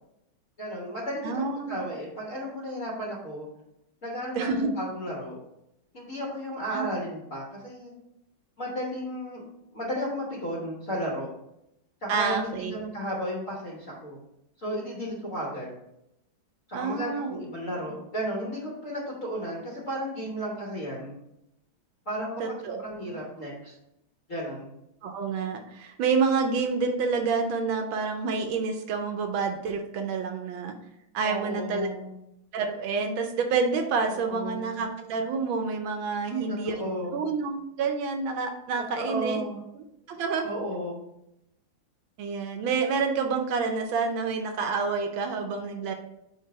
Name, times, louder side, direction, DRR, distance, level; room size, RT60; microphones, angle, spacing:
voice 1, 0.6-3.5 4.0-5.4 5.9-7.9 8.6-9.4 9.7-11.3 12.0-14.2 14.6-15.7 16.7-21.2 22.0-22.4 22.7-23.7 24.3-24.7 31.2-32.1 34.1-34.7 36.3-37.2 38.9-39.6 40.4-41.0, equal, 45° left, -5 dB, 1.5 m, -34 dB
voice 2, 1.2-1.8 4.3-4.7 6.7-6.9 12.1-12.8 16.7-17.4 22.4-22.8 25.0-30.7 31.1-31.9 32.5-36.8 37.1-39.4 40.1-40.5 42.2-45.9, right 5 dB, 75° right, 5 dB, 1.4 m, -28 dB
4.6 x 4.5 x 4.6 m, 0.83 s
omnidirectional pair, 2.3 m